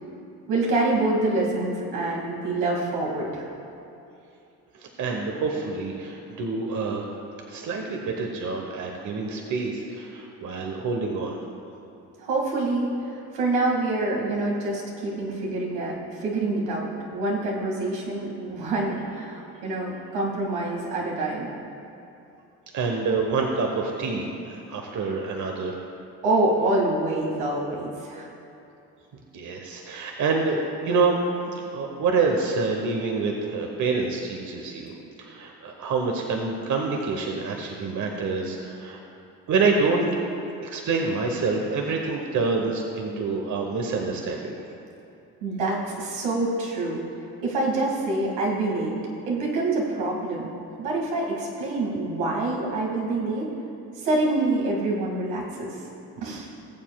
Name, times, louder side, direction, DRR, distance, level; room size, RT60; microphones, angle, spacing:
voice 1, 0.5-3.5 12.2-12.9 13.3-21.5 26.2-28.3 45.4-47.0 47.4-48.9 49.3-50.5 50.8-53.5 54.0-55.7 56.2-56.5, right 2 dB, 80° right, -3 dB, 2.2 m, -26 dB
voice 2, 4.7-7.0 7.5-11.4 22.7-25.8 29.3-31.2 31.7-34.9 35.2-39.0 39.5-40.2 40.6-44.6, right 4 dB, 50° right, 1 dB, 1.2 m, -27 dB
19.5 x 7.3 x 2.4 m, 2.8 s
supercardioid pair, 70°, 37 cm